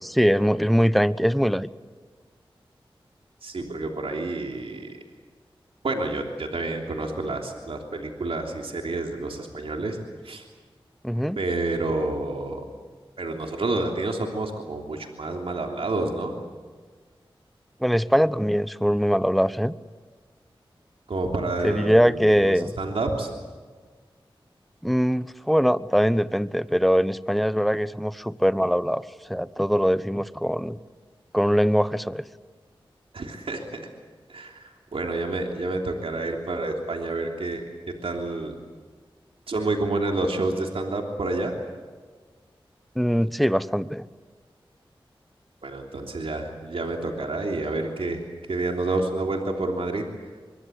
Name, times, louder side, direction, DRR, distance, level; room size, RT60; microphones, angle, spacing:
voice 1, 0.0-1.7 11.0-11.4 17.8-19.8 21.6-22.7 24.8-29.0 29.3-30.8 31.3-32.2 43.0-44.1, equal, ahead, 15 dB, 1.0 m, -22 dB
voice 2, 3.4-5.0 5.8-10.0 10.2-10.4 11.3-12.6 13.2-16.4 21.1-23.3 33.1-33.9 34.3-37.6 38.0-38.5 39.5-41.5 45.6-48.2 48.5-50.1, right 2 dB, 80° right, 2 dB, 3.2 m, -29 dB
24.5 x 23.5 x 8.3 m, 1.5 s
cardioid pair, 45°, 10 cm